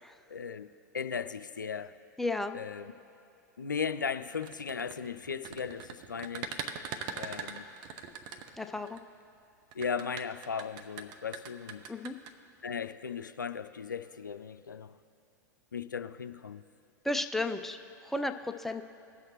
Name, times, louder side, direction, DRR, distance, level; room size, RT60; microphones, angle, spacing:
voice 1, 0.3-0.7 0.9-1.9 2.5-2.9 3.6-6.5 7.1-7.6 9.7-11.8 12.6-14.9 15.7-16.6, left 6 dB, 90° left, 11 dB, 0.4 m, -37 dB
voice 2, 2.2-2.6 8.6-9.0 11.9-12.2 17.0-18.8, left 2 dB, 5° left, 7 dB, 0.5 m, -33 dB
sound 1, 4.3-9.0 9.7-12.3, right 7 dB, 45° right, 0.8 m, -41 dB
19.0 x 6.4 x 3.1 m, 2.5 s
hypercardioid pair, 95°, 10 cm